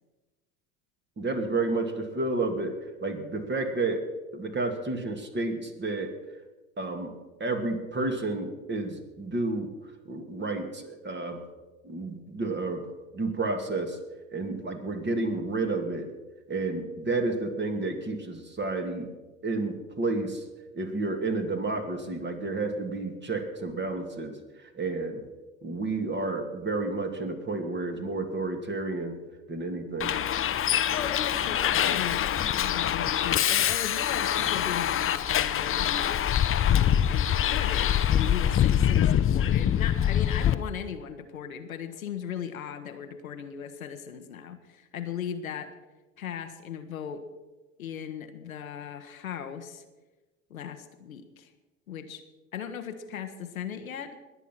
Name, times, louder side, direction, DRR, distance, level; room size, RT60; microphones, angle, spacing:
voice 1, 1.2-2.7 3.0-4.0 4.3-6.1 6.8-7.1 7.4-9.7 10.0-11.4 11.8-12.8 13.1-14.0 14.3-16.1 16.5-19.1 19.4-20.4 20.7-25.2 25.6-29.2 29.5-30.1, right 3 dB, 25° right, 5 dB, 2.6 m, -31 dB
Bus, 30.0-40.5, left 10 dB, 30° left, 0.9 m, -25 dB
voice 2, 30.9-36.3 36.6-45.7 46.2-47.2 47.8-49.8 50.5-51.5 51.9-52.2 52.5-54.2, left 8 dB, 90° left, 7 dB, 1.2 m, -37 dB
21.0 x 8.3 x 6.0 m, 1.2 s
hypercardioid pair, 70°, 41 cm